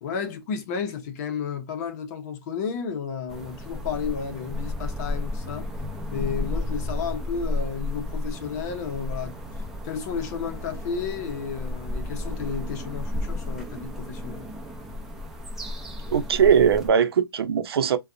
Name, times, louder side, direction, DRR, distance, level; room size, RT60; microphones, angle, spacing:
voice 1, 0.0-5.7 6.1-9.3 9.8-14.5, left 6 dB, 40° left, 0.9 m, -32 dB
sound 1, 3.3-16.9, left 1 dB, 5° right, 0.8 m, -33 dB
voice 2, 16.1-18.0, right 7 dB, 70° right, 0.7 m, -20 dB
4.0 x 2.3 x 2.5 m
hypercardioid pair, 145°, 13 cm